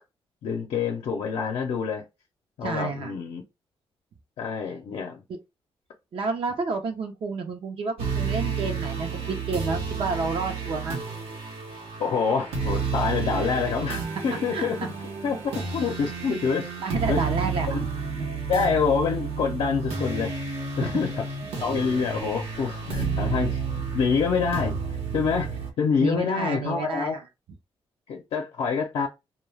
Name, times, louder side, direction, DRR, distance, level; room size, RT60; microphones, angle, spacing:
voice 1, 0.4-2.0 2.6-3.4 4.4-5.2 12.0-14.8 15.2-16.7 17.1-17.2 17.7-17.8 18.5-20.4 20.8-21.2 21.6-23.6 23.9-24.7 25.1-27.2 28.1-29.1, left 5 dB, 75° left, 0.6 m, -26 dB
voice 2, 2.6-3.1 5.3-5.4 6.1-11.0 14.5-14.7 16.8-17.9 20.8-20.9 26.0-27.2, right 4 dB, 65° right, 0.6 m, -30 dB
sound 1, 8.0-25.7, right 5 dB, 85° right, 0.9 m, -31 dB
2.2 x 2.2 x 3.2 m
cardioid pair, 105°, 10 cm